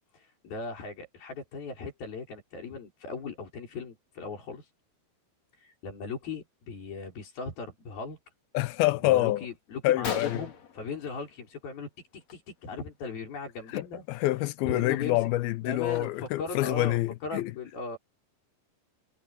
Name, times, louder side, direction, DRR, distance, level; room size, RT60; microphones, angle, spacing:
voice 1, 0.1-4.7 5.5-8.2 9.0-14.0 14.6-15.3 15.6-18.0, left 4 dB, 60° left, 7.1 m, -38 dB
voice 2, 8.5-9.5 9.8-10.4 13.7-17.5, left 17 dB, 80° left, 2.2 m, -27 dB
Gunshot gunfire, 9.8-9.9 10.0-11.7 12.0-12.3 12.6-12.8 13.6-13.8 14.3-14.4 14.9-16.5, left 6 dB, 45° left, 3.3 m, -39 dB
omnidirectional pair, 4.8 m